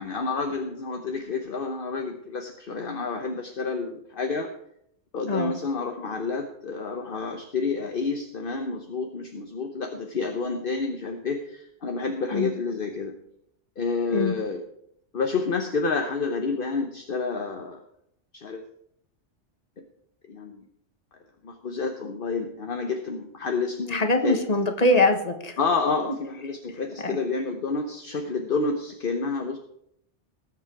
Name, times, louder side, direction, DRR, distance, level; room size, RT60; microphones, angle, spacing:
voice 1, 0.0-4.5 5.1-13.1 13.8-14.6 15.1-17.8 18.3-18.6 20.3-20.6 21.4-24.4 25.6-29.6, left 4 dB, 50° left, 5 dB, 1.1 m, -29 dB
voice 2, 23.9-25.5 27.0-27.2, left 2 dB, 35° left, 5 dB, 1.5 m, -22 dB
19.0 x 7.4 x 4.7 m, 0.74 s
omnidirectional pair, 1.2 m